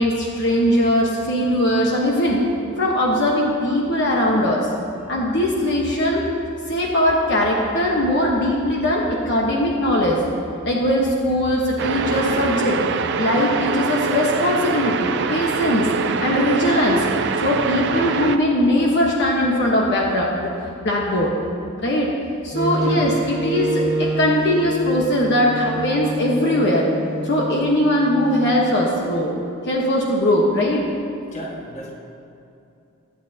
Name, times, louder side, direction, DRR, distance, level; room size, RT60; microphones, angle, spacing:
voice 1, 0.0-2.4 2.8-4.7 5.1-6.2 6.7-10.2 10.6-12.8 13.2-15.9 16.2-17.1 17.4-20.5 20.8-21.3 21.8-22.1 22.4-26.9 27.2-29.3 29.7-30.8, left 1 dB, 55° left, -3 dB, 1.3 m, -20 dB
sound 1, 11.8-18.4, right 5 dB, 55° right, 0.5 m, -24 dB
Wind instrument woodwind instrument, 22.5-28.6, right 2 dB, 35° right, 1.6 m, -28 dB
voice 2, 31.3-31.9, right 1 dB, 35° left, -2 dB, 1.7 m, -35 dB
22.5 x 8.8 x 2.9 m, 2.7 s
head